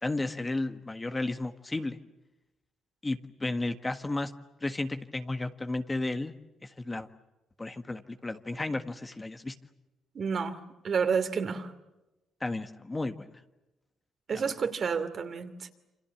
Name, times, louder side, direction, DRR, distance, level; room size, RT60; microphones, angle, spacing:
voice 1, 0.0-2.0 3.0-4.3 4.6-6.3 6.6-7.1 7.6-9.5 12.4-13.3 14.3-14.5, left 2 dB, 20° left, 8 dB, 1.6 m, -33 dB
voice 2, 10.1-11.7 14.3-15.7, right 6 dB, 50° right, 9 dB, 2.7 m, -30 dB
28.5 x 26.0 x 7.3 m, 1.0 s
cardioid pair, 90°, 0 cm